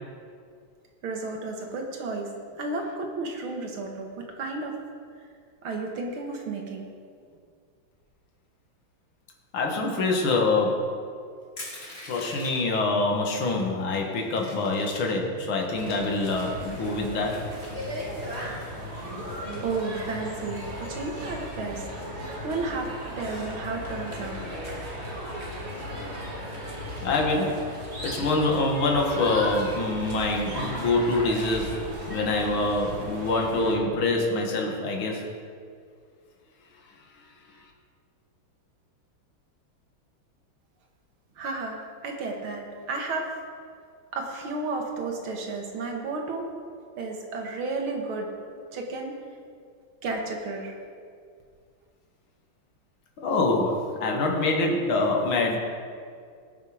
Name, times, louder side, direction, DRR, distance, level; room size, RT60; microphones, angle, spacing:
voice 1, 1.0-4.1 4.4-4.8 5.6-6.9 19.6-21.9 22.4-24.4 41.4-43.3 44.1-46.5 47.0-48.3 48.7-49.2 50.0-50.7, right 3 dB, 85° right, 2 dB, 2.3 m, -32 dB
voice 2, 9.5-10.9 12.1-17.4 27.0-27.6 28.0-31.8 32.1-35.2 53.2-55.6, left 2 dB, 80° left, 0 dB, 2.4 m, -25 dB
Crushing, 11.6-12.8 13.5-13.6 13.9-15.2 15.6-16.7, left 1 dB, 30° left, 2.8 m, -42 dB
sound 1, 15.7-33.7, equal, 30° right, 2.5 m, -36 dB
19.0 x 6.6 x 5.0 m, 2.2 s
omnidirectional pair, 2.2 m